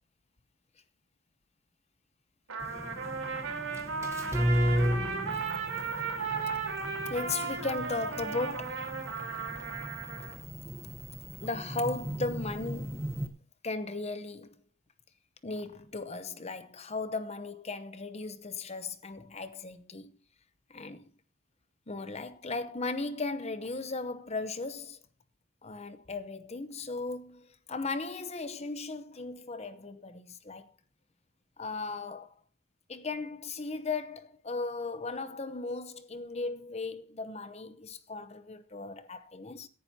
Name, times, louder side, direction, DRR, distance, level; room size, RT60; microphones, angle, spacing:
Trumpet, 2.5-10.4, right 4 dB, 80° right, 3.9 m, -35 dB
sound 1, 2.6-13.3, equal, 15° right, 1.1 m, -35 dB
voice 1, 7.1-8.8 10.8-11.0 11.4-13.3 13.6-14.6 15.4-20.1 20.7-21.1 21.9-25.0 25.6-30.7 31.6-32.3 32.9-39.7, left 3 dB, 30° left, 0.8 m, -37 dB
18.0 x 10.5 x 2.8 m
head